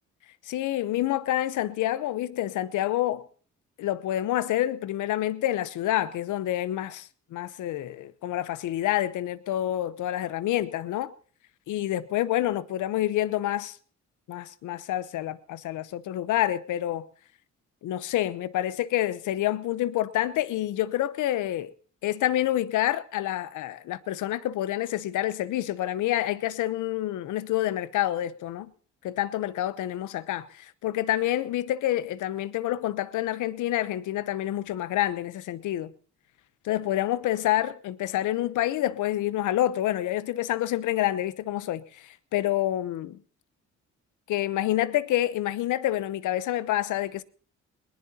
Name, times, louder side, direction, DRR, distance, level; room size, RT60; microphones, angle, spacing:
voice 1, 0.5-3.3 3.8-11.1 11.7-13.8 14.3-17.1 17.8-21.7 22.0-28.7 29.0-35.9 36.6-43.2 44.3-47.2, left 13 dB, 80° left, 0.8 m, -28 dB
21.0 x 19.5 x 2.8 m
cardioid pair, 90°, 30 cm